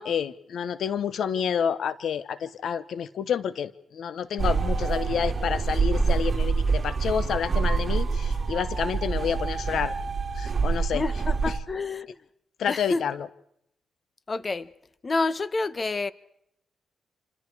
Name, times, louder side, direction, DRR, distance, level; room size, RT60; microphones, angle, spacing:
voice 1, 0.0-9.9 10.4-11.0 12.6-13.3, left 7 dB, 75° left, 1.1 m, -29 dB
sound 1, 4.4-11.6, right 4 dB, 40° right, 3.6 m, -26 dB
voice 2, 10.9-12.1 12.7-13.0 14.3-14.7 15.0-16.1, left 3 dB, 35° left, 1.2 m, -28 dB
28.0 x 27.0 x 4.8 m
cardioid pair, 75°, 0 cm